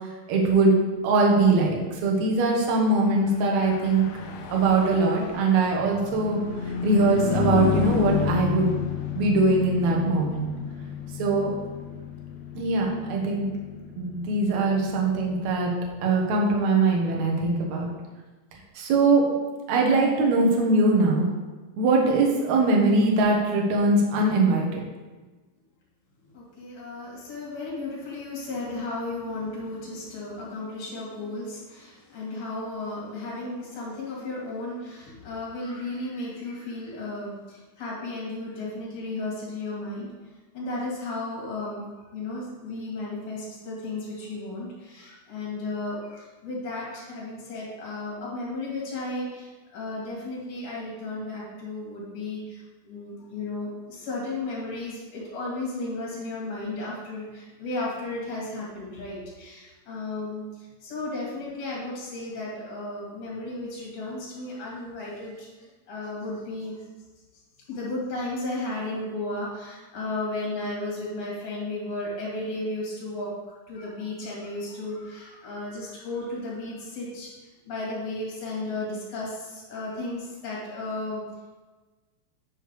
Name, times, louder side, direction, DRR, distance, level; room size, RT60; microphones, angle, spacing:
voice 1, 0.3-0.8 1.0-4.0 4.5-8.7 9.1-10.5 11.2-11.5 12.5-13.5 14.0-15.7 16.0-17.9 18.8-19.2 19.7-21.3 21.7-24.8, right 3 dB, 65° right, -1 dB, 2.4 m, -22 dB
Car passing by / Truck, 3.3-17.0, left 8 dB, 80° left, 1.5 m, -32 dB
voice 2, 26.2-40.1 40.5-66.8 67.7-73.3 73.7-81.2, left 2 dB, 60° left, -6 dB, 4.0 m, -34 dB
9.8 x 6.5 x 3.3 m, 1.3 s
omnidirectional pair, 3.9 m